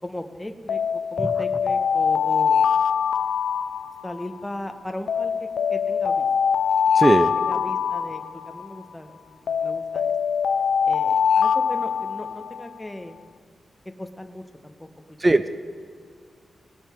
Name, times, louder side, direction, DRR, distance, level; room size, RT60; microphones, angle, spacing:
voice 1, 0.0-2.7 4.0-6.3 7.4-10.1 10.8-13.2 14.0-15.3, left 1 dB, 10° left, 6 dB, 0.9 m, -37 dB
Alarm, 0.7-4.4 5.1-8.8 9.5-12.7, left 7 dB, 80° left, 0.3 m, -23 dB
voice 2, 6.9-7.3 15.2-15.5, right 2 dB, 25° right, 11 dB, 0.4 m, -18 dB
19.0 x 8.7 x 3.6 m, 2.2 s
cardioid pair, 85°, 0 cm